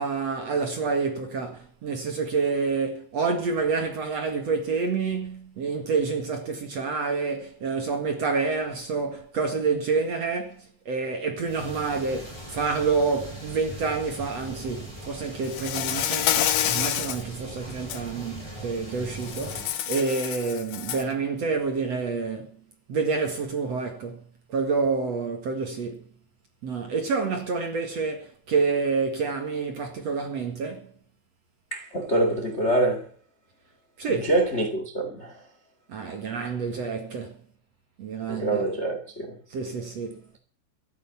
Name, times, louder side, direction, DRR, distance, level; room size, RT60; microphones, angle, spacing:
voice 1, 0.0-22.6 22.9-26.1 26.6-30.9 34.0-34.3 35.9-37.4 38.0-38.6 39.5-40.2, right 4 dB, 50° right, 2.2 m, -28 dB
sound 1, 11.4-19.7, right 1 dB, 5° left, 6.5 m, -40 dB
Insect, 15.5-17.2 17.7-18.0 19.2-21.1, left 11 dB, 70° left, 2.2 m, -27 dB
voice 2, 31.7-33.1 34.2-35.4 38.3-39.4, right 1 dB, 40° left, 1.0 m, -25 dB
13.5 x 10.5 x 7.2 m
omnidirectional pair, 5.1 m